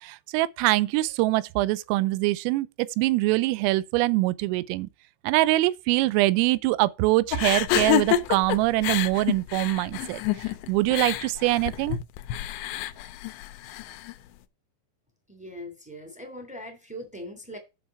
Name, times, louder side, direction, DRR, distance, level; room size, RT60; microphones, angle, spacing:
voice 1, 0.0-2.7 3.0-4.9 5.3-10.2 10.7-12.0, right 18 dB, 85° right, 3.3 m, -23 dB
sound 1, 7.3-14.1, left 12 dB, 80° left, 2.5 m, -28 dB
voice 2, 15.3-17.6, equal, 5° right, 0.9 m, -40 dB
10.0 x 6.3 x 4.8 m
omnidirectional pair, 5.9 m